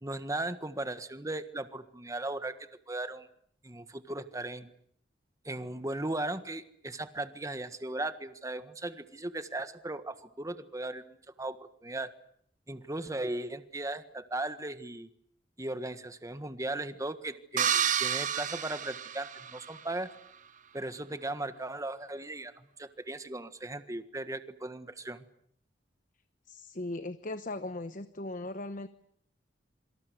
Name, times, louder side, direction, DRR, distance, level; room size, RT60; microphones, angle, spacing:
voice 1, 0.0-3.3 3.6-4.7 5.4-12.1 12.7-15.1 15.6-20.1 20.7-25.2, right 2 dB, 20° right, 10 dB, 1.6 m, -37 dB
sound 1, 17.6-19.8, right 8 dB, 45° right, 1.1 m, -30 dB
voice 2, 26.5-28.9, left 2 dB, 45° left, 11 dB, 1.1 m, -38 dB
27.0 x 25.0 x 8.1 m, 0.66 s
head